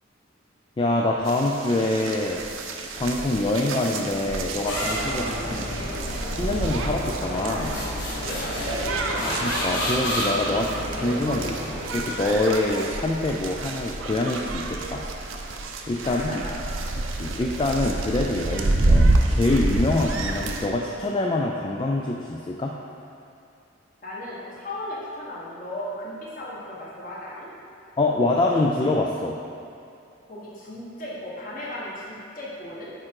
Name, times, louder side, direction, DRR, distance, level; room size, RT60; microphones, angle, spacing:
voice 1, 0.8-2.5 3.0-5.7 6.3-7.8 9.4-15.0 15.9-16.4 17.2-22.7 28.0-29.4, left 2 dB, 25° left, -1 dB, 0.3 m, -25 dB
sound 1, 1.2-20.7, right 2 dB, 80° right, 0.6 m, -28 dB
sound 2, 4.7-12.1, equal, 60° left, 1.5 m, -30 dB
voice 2, 5.0-5.8 8.2-9.0 16.0-16.5 24.0-27.5 30.2-32.9, left 1 dB, 45° left, -6 dB, 1.5 m, -36 dB
8.8 x 3.7 x 4.6 m, 2.6 s
head